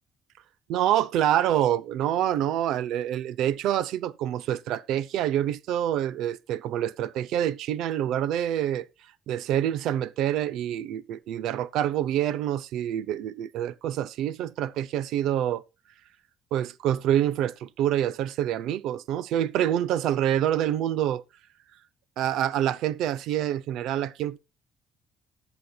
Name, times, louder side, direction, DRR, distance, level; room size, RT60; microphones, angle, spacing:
voice 1, 0.7-8.9 9.3-15.6 16.5-21.2 22.2-24.4, right 11 dB, 80° right, 0.5 m, -26 dB
19.0 x 7.0 x 2.3 m
cardioid pair, 140°, 0 cm